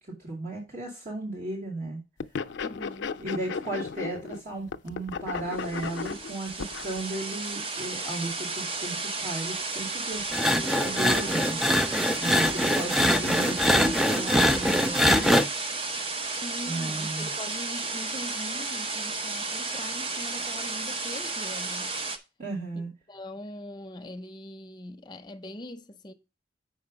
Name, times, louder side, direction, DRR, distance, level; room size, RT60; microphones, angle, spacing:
voice 1, 0.0-2.0 3.2-11.6 12.2-15.5 16.7-17.3 22.4-22.9, right 2 dB, 50° right, 2.5 m, -35 dB
sound 1, 2.2-4.4 4.7-7.0, left 5 dB, 90° left, 0.5 m, -35 dB
voice 2, 2.6-3.2 16.4-21.9 23.1-26.1, left 1 dB, 25° left, 0.7 m, -41 dB
sound 2, 5.5-22.2, right 3 dB, 30° right, 0.7 m, -33 dB
sound 3, 10.3-15.4, equal, ahead, 0.4 m, -23 dB
7.3 x 5.2 x 5.0 m
head